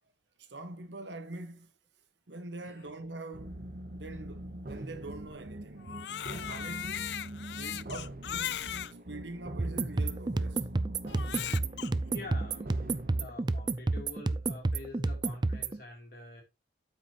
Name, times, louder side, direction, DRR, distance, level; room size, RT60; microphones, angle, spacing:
voice 1, 0.4-1.7 2.3-7.2 7.6-8.6 9.1-10.8, right 2 dB, 90° right, 1.4 m, -44 dB
sound 1, 3.3-13.3, right 1 dB, 55° right, 1.0 m, -43 dB
Crying sobbing, 5.8-8.9 9.7-9.8 11.1-11.9, left 10 dB, 75° left, 0.4 m, -38 dB
sound 2, 9.6-15.8, right 3 dB, 25° right, 0.4 m, -31 dB
voice 2, 12.1-12.8 13.1-16.4, left 2 dB, 55° left, 3.2 m, -47 dB
8.9 x 7.4 x 3.0 m
head